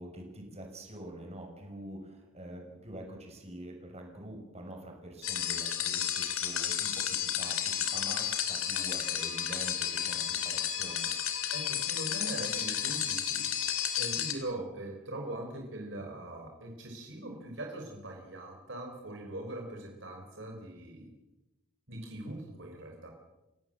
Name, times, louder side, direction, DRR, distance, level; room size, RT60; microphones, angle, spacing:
voice 1, 0.0-11.1, right 1 dB, 30° right, 2 dB, 6.0 m, -45 dB
sound 1, 5.2-14.3, left 9 dB, 85° left, 3.1 m, -32 dB
voice 2, 11.5-13.5 14.0-21.1 21.9-23.1, right 1 dB, 60° right, 2 dB, 3.7 m, -41 dB
29.0 x 17.0 x 7.5 m, 1.0 s
head